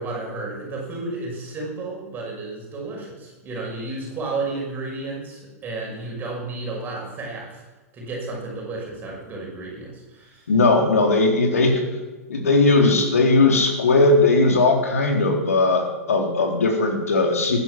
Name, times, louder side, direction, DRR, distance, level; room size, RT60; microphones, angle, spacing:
voice 1, 0.0-7.6 7.9-10.4, right 3 dB, 25° right, -2 dB, 5.9 m, -32 dB
voice 2, 10.5-11.8 12.3-17.6, left 3 dB, 70° left, 2 dB, 3.5 m, -18 dB
15.0 x 11.0 x 6.3 m, 1.2 s
figure-of-eight pair, 100°, 8 cm